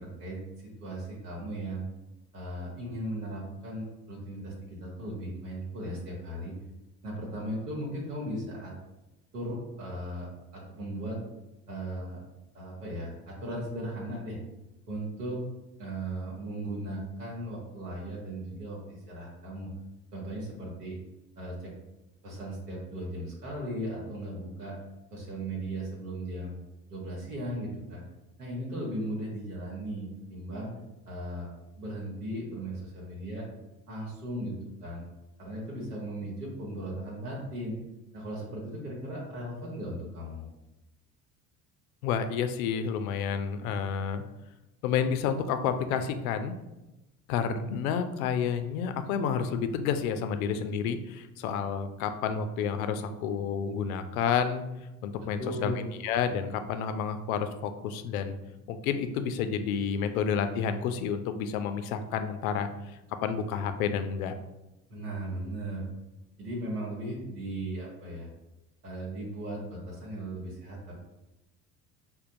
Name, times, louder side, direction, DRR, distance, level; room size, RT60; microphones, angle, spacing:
voice 1, 0.0-1.8 2.3-6.5 7.0-8.7 9.3-11.2 11.7-12.2 12.5-14.4 14.9-15.4 15.8-19.7 20.1-21.0 21.4-21.7 22.2-24.8 25.1-26.5 26.9-28.0 28.4-30.7 31.1-31.5 31.7-33.4 33.9-35.0 35.4-37.8 38.1-40.5 55.2-55.9 64.9-65.9 66.4-68.3 68.8-71.0, right 1 dB, 80° right, -4 dB, 1.0 m, -37 dB
voice 2, 42.0-44.2 44.8-46.5 47.3-54.6 55.0-55.7 56.0-58.3 58.7-64.4, left 7 dB, 65° left, 9 dB, 0.5 m, -30 dB
5.2 x 2.2 x 2.5 m, 0.99 s
figure-of-eight pair, 60°, 46 cm